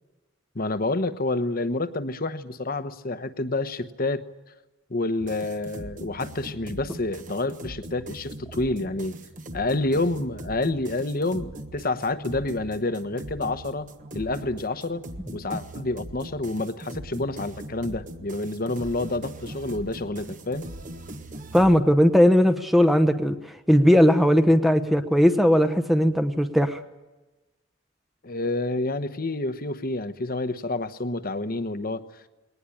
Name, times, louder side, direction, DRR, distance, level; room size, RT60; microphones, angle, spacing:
voice 1, 0.5-4.2 4.9-9.2 9.5-15.0 15.3-20.7 28.2-32.0, left 2 dB, 45° left, 11 dB, 1.1 m, -28 dB
sound 1, 5.2-21.8, right 1 dB, 40° right, 1.3 m, -40 dB
voice 2, 21.5-26.8, equal, ahead, 8 dB, 0.9 m, -18 dB
21.0 x 19.0 x 9.9 m, 1.1 s
head